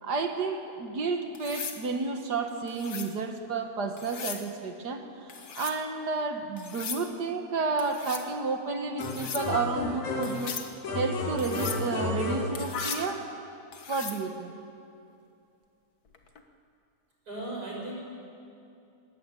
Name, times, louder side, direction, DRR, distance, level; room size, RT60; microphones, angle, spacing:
voice 1, 0.0-5.0 5.5-10.5 10.9-13.3 13.9-14.5, right 4 dB, 50° right, 5 dB, 1.4 m, -31 dB
sound 1, 1.3-1.8 2.7-3.1 4.0-4.5 5.3-5.8 6.6-7.0 7.8-8.3 9.0-9.5 10.2-10.7 11.4-11.8 12.5-13.1 13.7-14.2 16.1-16.4, left 6 dB, 50° left, 1.1 m, -38 dB
sound 2, 9.0-10.5 10.8-13.1, left 3 dB, 80° left, 3.8 m, -32 dB
voice 2, 17.2-18.0, right 2 dB, 30° right, -3 dB, 6.5 m, -36 dB
21.0 x 17.0 x 9.1 m, 2.6 s
omnidirectional pair, 3.4 m